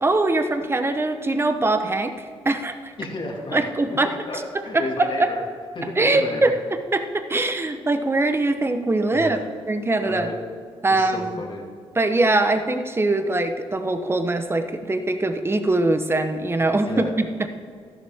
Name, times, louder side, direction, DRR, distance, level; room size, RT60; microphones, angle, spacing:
voice 1, 0.0-2.9 3.5-4.2 4.5-5.3 6.0-9.4 9.7-10.3 10.8-11.4 11.9-17.5, right 2 dB, 20° right, 8 dB, 0.9 m, -22 dB
voice 2, 3.0-3.6 4.3-5.4 5.8-6.4 9.1-9.4 10.0-10.4 10.9-11.6 16.9-17.1, left 2 dB, 45° left, 1 dB, 2.1 m, -32 dB
12.5 x 11.0 x 3.6 m, 2.1 s
cardioid pair, 75°, 11 cm